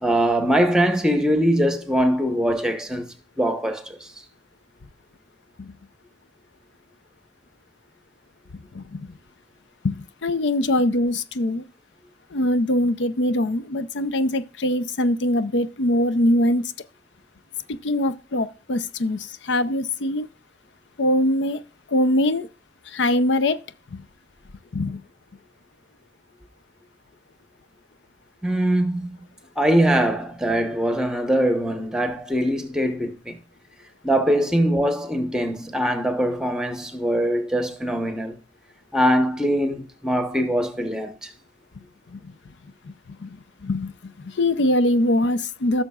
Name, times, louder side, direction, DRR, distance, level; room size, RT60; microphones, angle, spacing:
voice 1, 0.0-3.1 3.4-4.1 28.4-29.2 29.6-33.4 34.0-38.4 38.9-41.3, equal, 5° right, 1.0 m, -22 dB
voice 2, 8.7-9.1 9.8-11.6 12.3-16.7 17.8-20.3 21.0-21.6 21.9-22.5 22.9-23.6 23.9-24.0 24.7-25.0 42.1-42.3 42.9-43.0 43.2-43.3 43.6-43.9 44.2-45.8, left 1 dB, 85° left, 0.6 m, -22 dB
15.5 x 6.5 x 2.4 m
head